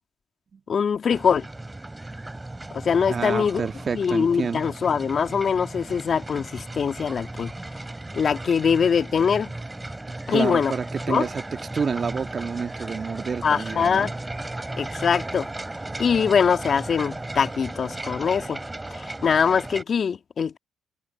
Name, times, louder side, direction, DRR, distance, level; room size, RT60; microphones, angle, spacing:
voice 1, 0.7-1.5 2.7-3.7 3.9-7.5 8.1-9.5 10.3-10.7 11.1-11.3 13.4-14.1 14.8-15.5 16.0-18.6 18.9-20.6, left 6 dB, 55° left, 2.1 m, -23 dB
sound 1, 1.1-19.8, right 2 dB, 15° right, 2.9 m, -36 dB
voice 2, 3.1-4.6 10.3-11.4 11.7-14.1, right 5 dB, 50° right, 1.6 m, -28 dB
supercardioid pair, 50°, 0 cm